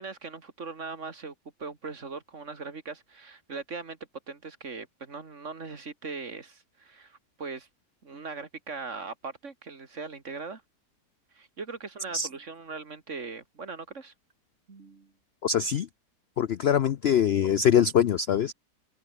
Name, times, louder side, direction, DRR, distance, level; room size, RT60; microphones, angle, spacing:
voice 1, 0.0-4.0 4.3-7.7 8.0-10.6 11.3-14.1 14.7-15.1, right 4 dB, 45° right, 2.4 m, -40 dB
voice 2, 15.4-15.9 16.4-18.5, left 8 dB, 65° left, 0.6 m, -23 dB
omnidirectional pair, 1.8 m